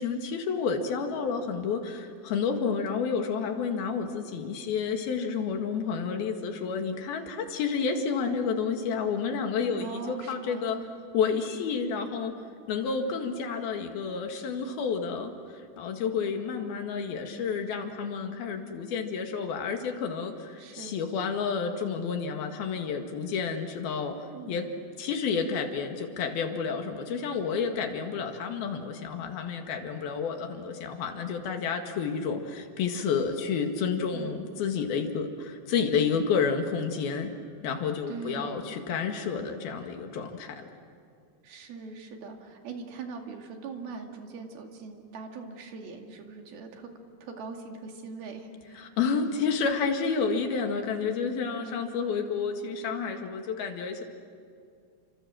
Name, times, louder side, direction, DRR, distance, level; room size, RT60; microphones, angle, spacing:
voice 1, 0.0-10.8 11.1-12.3 12.7-24.2 24.5-24.7 25.0-37.3 37.6-40.7 48.8-54.0, left 5 dB, 80° left, 5 dB, 3.9 m, -30 dB
voice 2, 9.8-10.9 20.6-21.0 24.3-24.6 34.1-34.4 38.1-38.7 41.4-46.9 47.2-49.0 51.6-51.9, right 4 dB, 85° right, 3 dB, 4.3 m, -41 dB
29.5 x 26.0 x 7.6 m, 2.3 s
omnidirectional pair, 4.3 m